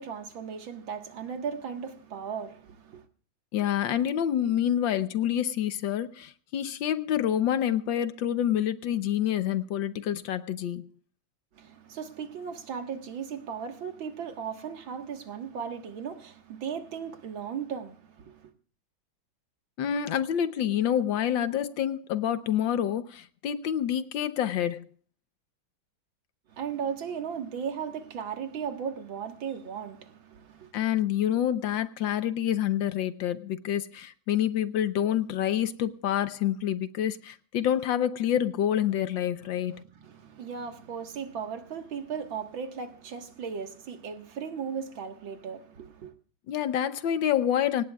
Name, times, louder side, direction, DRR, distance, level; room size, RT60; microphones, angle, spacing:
voice 1, 0.0-3.0 11.5-18.5 26.5-30.7 39.4-46.1, right 7 dB, 75° right, 2.3 m, -37 dB
voice 2, 3.5-10.9 19.8-24.9 30.7-39.8 46.5-47.8, left 10 dB, 75° left, 1.5 m, -27 dB
26.0 x 18.0 x 2.3 m
omnidirectional pair, 2.1 m